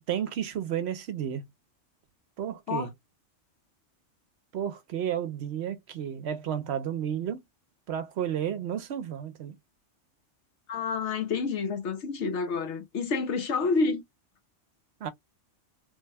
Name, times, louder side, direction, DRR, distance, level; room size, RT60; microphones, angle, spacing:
voice 1, 0.0-1.5 2.4-2.9 4.5-7.4 7.9-9.6 15.0-15.1, right 9 dB, 70° right, 0.8 m, -32 dB
voice 2, 10.7-14.0, left 4 dB, 70° left, 1.0 m, -28 dB
3.3 x 2.1 x 3.3 m
omnidirectional pair, 1.2 m